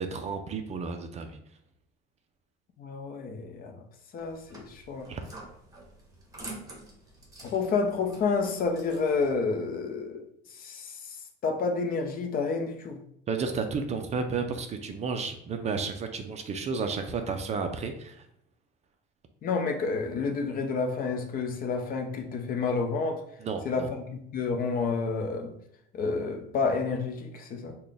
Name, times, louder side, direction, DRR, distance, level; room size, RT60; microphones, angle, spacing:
voice 1, 0.0-1.4 5.1-5.2 13.3-18.3 23.4-23.9, right 5 dB, 35° right, 6 dB, 0.4 m, -32 dB
voice 2, 2.8-3.8 4.1-5.1 7.4-10.2 10.5-11.2 11.4-13.0 19.4-23.2 23.6-25.5 25.9-27.7, left 4 dB, 45° left, 5 dB, 0.6 m, -29 dB
sound 1, 4.2-9.3, right 2 dB, 15° right, 1.0 m, -47 dB
4.0 x 2.2 x 3.4 m, 0.73 s
cardioid pair, 125°, 21 cm